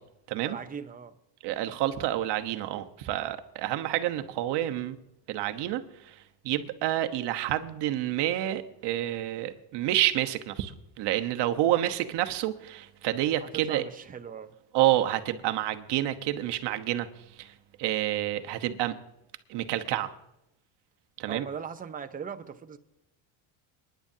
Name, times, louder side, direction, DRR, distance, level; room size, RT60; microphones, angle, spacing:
voice 1, 0.5-1.1 13.4-14.5 21.3-22.8, right 7 dB, 15° right, 7 dB, 0.8 m, -39 dB
voice 2, 1.4-5.0 5.3-13.9 14.7-17.1 17.4-17.5 17.8-19.0 19.5-20.1 21.2-21.5, right 13 dB, 55° right, 7 dB, 1.2 m, -29 dB
28.0 x 10.5 x 2.8 m, 0.85 s
supercardioid pair, 120°, 48 cm